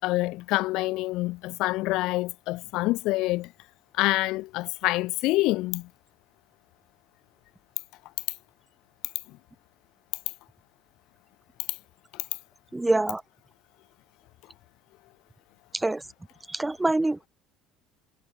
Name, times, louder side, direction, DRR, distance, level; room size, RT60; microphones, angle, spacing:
voice 1, 0.0-3.5 4.0-5.9, left 19 dB, 70° left, 5.7 m, -26 dB
voice 2, 12.7-13.2 15.7-16.0 16.5-17.3, right 2 dB, 10° right, 2.1 m, -25 dB
cardioid pair, 125°, 0 cm